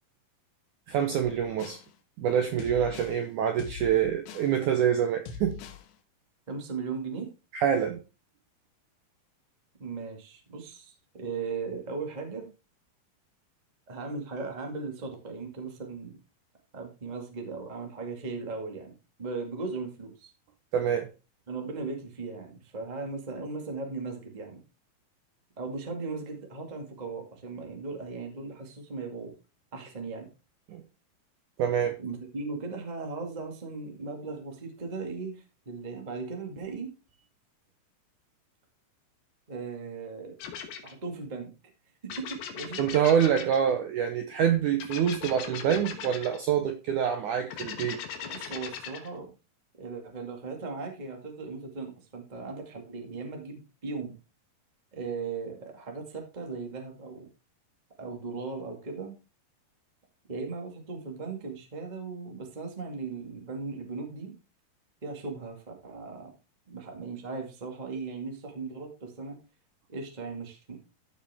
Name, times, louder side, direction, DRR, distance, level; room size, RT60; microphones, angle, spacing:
voice 1, 0.9-1.8 2.2-5.6 7.5-8.0 20.7-21.1 30.7-30.8 31.6-32.0 42.8-48.0, right 9 dB, 75° right, 1.8 m, -26 dB
sound 1, 1.2-1.9 2.6-3.2 3.6-4.5 5.3-5.9, left 7 dB, 90° left, 3.2 m, -42 dB
voice 2, 6.5-7.3 9.8-12.5 13.9-16.2 16.7-18.9 19.2-20.3 21.5-24.6 25.6-29.3 29.7-30.3 32.0-36.9 39.5-40.3 40.8-41.5 42.2-42.8 48.2-49.3 49.8-54.1 54.9-57.3 58.0-59.1 60.3-64.3 65.0-66.3 66.7-69.4 69.9-70.8, right 4 dB, 25° right, 0.9 m, -37 dB
sound 2, 40.4-40.9 42.1-43.7 44.8-46.4 47.5-49.1, left 7 dB, 70° left, 2.9 m, -39 dB
14.0 x 5.4 x 3.6 m
omnidirectional pair, 4.6 m